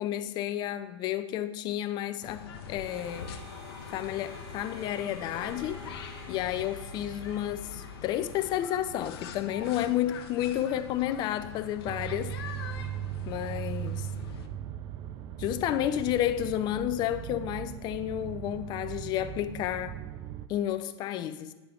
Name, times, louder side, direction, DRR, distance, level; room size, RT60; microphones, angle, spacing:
voice 1, 0.0-3.4 3.9-5.8 6.3-12.4 13.2-14.1 15.4-20.0 20.5-21.5, left 12 dB, 30° left, 0.5 m, -31 dB
sound 1, 2.2-14.5, left 6 dB, 65° left, 0.8 m, -43 dB
Harmonica, 2.8-9.2, right 2 dB, 70° right, 2.5 m, -50 dB
sound 2, 11.8-20.5, right 11 dB, 30° right, 0.3 m, -38 dB
8.6 x 5.2 x 4.5 m
hypercardioid pair, 130°, 14 cm